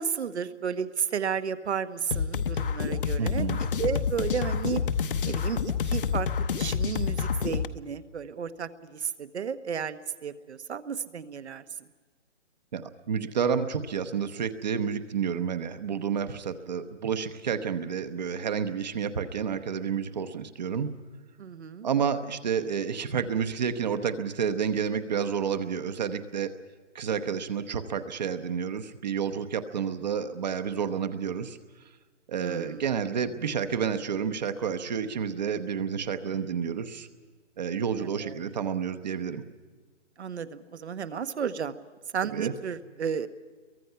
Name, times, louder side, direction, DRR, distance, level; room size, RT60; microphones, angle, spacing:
voice 1, 0.0-4.8 5.2-6.3 6.6-11.6 21.4-21.9 32.4-32.9 38.2-38.4 40.2-41.8 42.1-43.3, right 7 dB, 65° right, 13 dB, 1.3 m, -33 dB
sound 1, 2.1-7.7, left 6 dB, 45° left, 0.9 m, -28 dB
voice 2, 3.2-3.6 12.7-21.0 21.8-26.5 26.9-31.6 32.3-37.1 37.6-39.4 42.3-42.5, right 7 dB, 35° right, 9 dB, 1.0 m, -30 dB
29.5 x 23.0 x 5.7 m, 1.4 s
hypercardioid pair, 165°, 36 cm